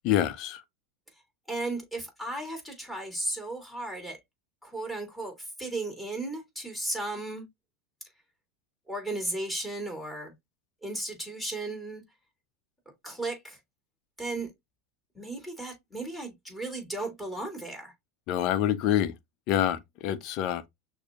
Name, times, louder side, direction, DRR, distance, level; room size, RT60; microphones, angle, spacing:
voice 1, 0.0-0.6 18.3-19.1 19.5-20.6, left 11 dB, 55° left, 0.7 m, -26 dB
voice 2, 1.5-4.2 4.6-7.5 8.9-10.3 10.8-12.0 13.0-13.6 14.2-14.5 15.1-17.9, right 2 dB, 5° left, 3.0 m, -35 dB
6.2 x 2.7 x 2.5 m
supercardioid pair, 110°, 0 cm